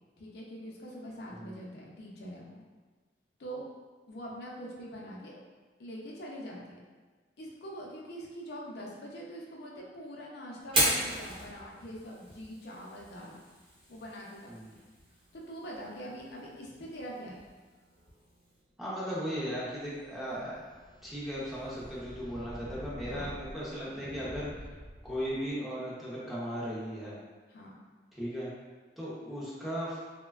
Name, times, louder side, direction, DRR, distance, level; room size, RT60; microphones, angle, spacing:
voice 1, 0.2-2.6 3.4-3.6 4.1-5.4 5.8-6.8 7.4-13.4 13.9-14.7 15.3-17.4 23.1-23.4 27.5-27.8, equal, 65° left, -3 dB, 0.5 m, -44 dB
Fire, 10.6-18.6, right 1 dB, 30° right, 0.8 m, -37 dB
voice 2, 18.8-20.6 21.0-24.7 25.0-27.2 28.1-28.5 29.0-30.0, equal, ahead, -8 dB, 0.5 m, -37 dB
sound 1, 19.3-25.5, equal, 80° right, 0.7 m, -48 dB
3.1 x 2.1 x 2.3 m, 1.4 s
head